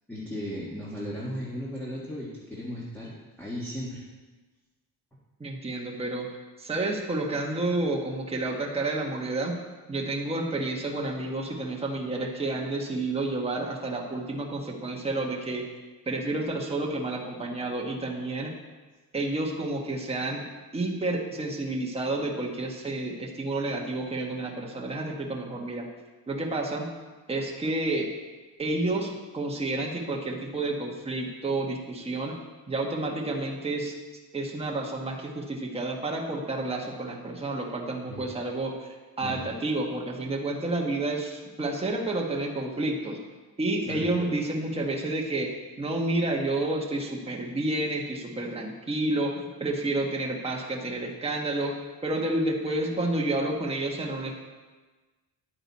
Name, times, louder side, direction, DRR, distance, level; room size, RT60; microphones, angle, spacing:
voice 1, 0.1-4.0 38.1-38.2 39.2-39.5 43.8-44.1, equal, 5° left, -7 dB, 1.7 m, -36 dB
voice 2, 5.4-6.3 6.6-9.6 9.9-15.6 16.1-18.5 19.1-20.4 20.7-25.9 26.3-26.9 27.3-28.1 28.6-32.4 32.7-33.9 34.3-43.2 43.6-45.5 45.8-51.8 52.0-54.3, right 2 dB, 15° right, -1 dB, 1.3 m, -30 dB
10.0 x 8.9 x 4.2 m, 1.3 s
cardioid pair, 135°, 37 cm